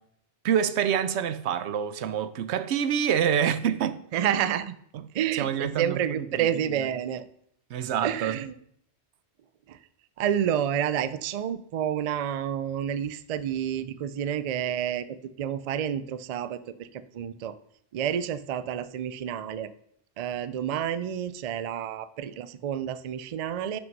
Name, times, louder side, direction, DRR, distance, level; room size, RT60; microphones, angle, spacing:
voice 1, 0.4-4.0 5.4-6.5 7.7-8.4, right 8 dB, 85° right, 0.9 m, -26 dB
voice 2, 4.1-4.7 5.1-7.3 8.0-8.6 9.7-9.8 10.2-17.5 17.9-19.7 20.2-23.8, right 9 dB, 55° right, 0.4 m, -29 dB
6.2 x 6.1 x 5.3 m
omnidirectional pair, 1.1 m